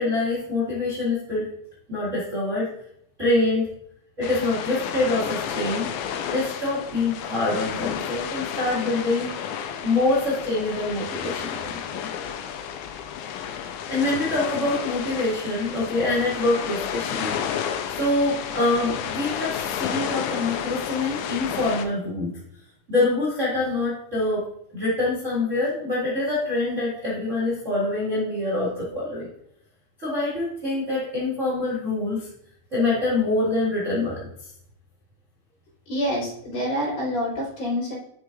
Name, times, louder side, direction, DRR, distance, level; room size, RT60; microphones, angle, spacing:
voice 1, 0.0-1.5 1.9-2.7 3.2-3.7 4.2-5.9 6.3-9.3 9.8-11.8 13.9-17.3 17.9-22.3 22.9-24.5 24.7-29.3 30.0-32.3 32.7-34.3, left 2 dB, 30° right, -8 dB, 1.3 m, -25 dB
sound 1, 4.2-21.9, left 8 dB, 80° left, 2.3 m, -31 dB
voice 2, 35.9-38.0, equal, 65° left, -7 dB, 4.4 m, -27 dB
10.5 x 6.2 x 2.5 m, 0.74 s
omnidirectional pair, 4.5 m